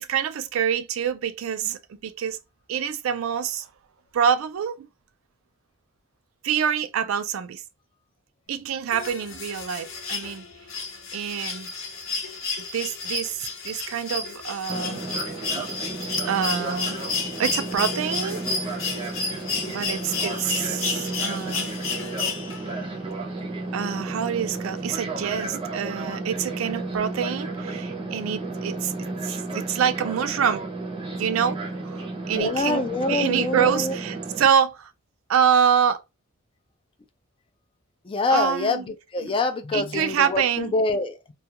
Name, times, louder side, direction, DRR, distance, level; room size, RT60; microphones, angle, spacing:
voice 1, 0.0-2.4 2.7-3.7 4.1-4.9 6.4-7.6 8.5-10.4 11.1-11.7 12.7-15.0 15.6-15.7 16.3-17.0 17.4-18.4 18.6-18.9 19.7-21.7 23.7-30.6 31.2-32.8 33.1-34.9 35.3-36.0 38.3-38.8 39.2-39.3 39.7-40.7, right 8 dB, 85° right, 0.4 m, -26 dB
sound 1, 8.9-22.8 24.2-24.3, left 4 dB, 80° left, 0.8 m, -31 dB
Fixed-wing aircraft airplane, 14.7-34.5, right 2 dB, 25° right, 0.6 m, -33 dB
voice 2, 32.3-34.0 38.0-41.3, left 3 dB, 25° left, 0.3 m, -25 dB
2.3 x 2.2 x 2.8 m
head